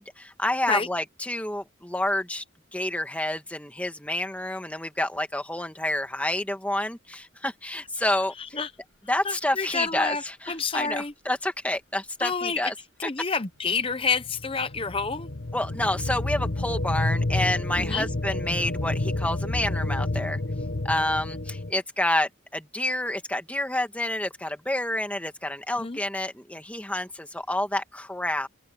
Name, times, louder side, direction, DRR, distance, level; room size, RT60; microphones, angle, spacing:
voice 1, 0.0-2.4 2.7-8.3 9.1-12.7 13.0-13.1 15.5-20.4 20.8-28.5, left 1 dB, 5° left, 1.6 m, -29 dB
voice 2, 9.2-11.1 12.2-12.6 13.0-15.3 17.8-18.1 25.8-26.0, left 5 dB, 25° left, 0.8 m, -28 dB
sound 1, 13.9-21.7, left 2 dB, 60° left, 1.3 m, -29 dB
open air
head